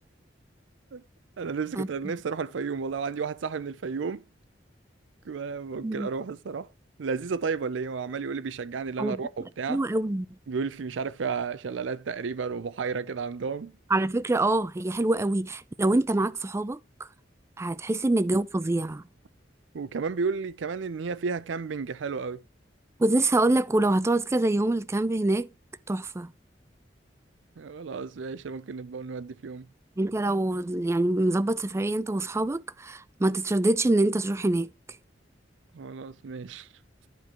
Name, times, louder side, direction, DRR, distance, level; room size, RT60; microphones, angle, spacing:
voice 1, 1.4-4.2 5.3-6.7 7.0-9.8 10.5-13.7 17.9-18.0 19.7-22.4 27.6-29.7 35.7-36.7, right 5 dB, 90° right, 0.5 m, -32 dB
voice 2, 9.7-10.3 13.9-17.1 17.6-19.0 23.0-25.5 25.9-26.3 30.0-34.7, right 2 dB, 15° right, 0.4 m, -25 dB
11.0 x 4.7 x 4.2 m
head